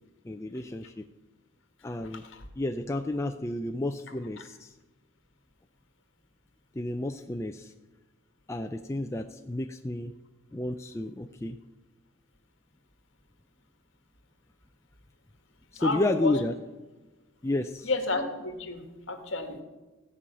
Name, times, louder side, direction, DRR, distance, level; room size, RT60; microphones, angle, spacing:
voice 1, 0.2-1.0 1.8-2.2 2.6-4.7 6.7-7.7 8.5-10.1 10.5-11.6 15.7-16.6 17.4-17.9, left 2 dB, 15° left, 6 dB, 0.3 m, -31 dB
voice 2, 2.1-2.4 4.4-4.5 15.7-16.4 17.8-19.6, left 2 dB, 60° left, 6 dB, 1.7 m, -32 dB
16.0 x 5.5 x 8.7 m, 1.2 s
head